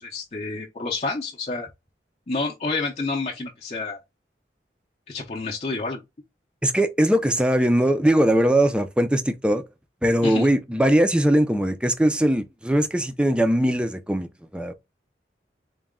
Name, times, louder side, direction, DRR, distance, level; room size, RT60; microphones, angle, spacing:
voice 1, 0.0-1.7 2.3-4.0 5.1-6.0 10.2-10.5, left 3 dB, 35° left, 0.6 m, -29 dB
voice 2, 6.6-9.6 10.0-14.3 14.5-14.7, right 1 dB, 5° right, 0.4 m, -20 dB
4.0 x 2.2 x 3.6 m
head